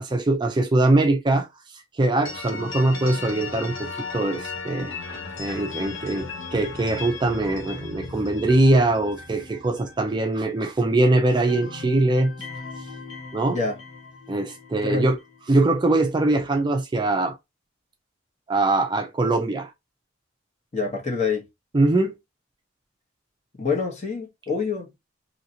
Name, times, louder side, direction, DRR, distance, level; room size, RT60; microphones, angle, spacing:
voice 1, 0.0-1.5 1.7-12.3 13.3-13.6 14.3-15.2 15.5-17.3 18.5-19.7 21.7-22.2, right 2 dB, 25° right, 0.4 m, -22 dB
sound 1, 2.2-11.0 11.3-15.4, left 4 dB, 85° left, 0.9 m, -37 dB
voice 2, 13.5-13.8 14.8-15.1 20.7-21.5 23.6-25.0, left 4 dB, 35° left, 1.0 m, -26 dB
2.8 x 2.8 x 2.7 m
head